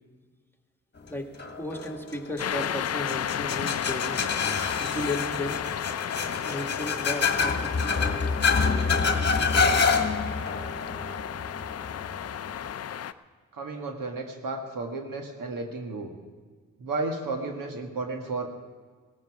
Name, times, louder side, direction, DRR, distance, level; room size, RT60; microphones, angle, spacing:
sound 1, 1.4-12.7, left 4 dB, 30° left, 1.5 m, -27 dB
voice 1, 1.6-4.2 4.8-5.6 6.4-7.8, left 1 dB, 5° left, 3 dB, 1.7 m, -34 dB
sound 2, 2.4-13.1, left 9 dB, 50° left, 0.5 m, -33 dB
voice 2, 13.5-16.1 16.8-18.5, right 3 dB, 75° right, 3 dB, 1.8 m, -33 dB
17.0 x 14.0 x 4.8 m, 1.5 s
cardioid pair, 60°, 33 cm